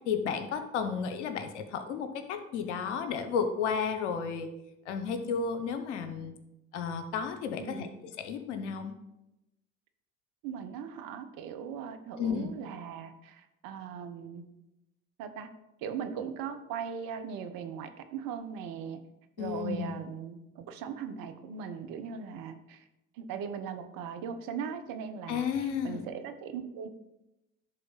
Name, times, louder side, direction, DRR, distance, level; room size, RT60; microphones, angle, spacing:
voice 1, 0.0-4.5 4.9-6.3 6.7-7.9 8.2-8.9 12.2-12.5 19.4-19.9 25.3-26.1, left 6 dB, 90° left, 8 dB, 0.8 m, -32 dB
voice 2, 7.6-7.9 10.4-14.5 15.2-15.5 15.8-19.0 19.4-22.8 23.2-26.9, right 7 dB, 70° right, 8 dB, 1.0 m, -39 dB
11.0 x 3.7 x 5.5 m, 0.91 s
hypercardioid pair, 55°, 34 cm